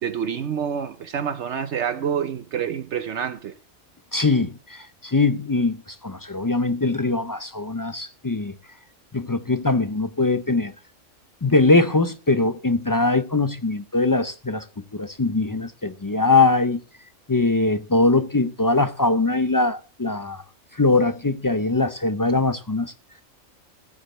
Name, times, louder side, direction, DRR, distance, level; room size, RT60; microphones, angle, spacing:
voice 1, 0.0-3.5, right 8 dB, 65° right, 1.0 m, -27 dB
voice 2, 4.1-8.5 9.1-10.7 11.4-14.6 14.9-16.8 17.3-20.4 20.8-22.9, left 3 dB, 35° left, 0.3 m, -21 dB
14.5 x 5.1 x 7.8 m
omnidirectional pair, 1.3 m